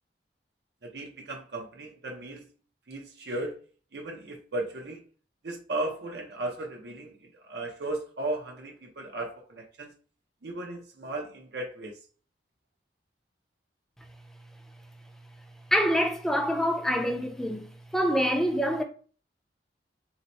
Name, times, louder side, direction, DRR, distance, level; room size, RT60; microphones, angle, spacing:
voice 1, 0.8-2.4 2.9-3.6 3.9-5.0 5.4-9.9 10.4-11.9, right 2 dB, 65° right, 0.6 m, -36 dB
voice 2, 15.7-17.7 17.9-18.8, equal, 5° left, 0.5 m, -25 dB
2.8 x 2.0 x 4.0 m
head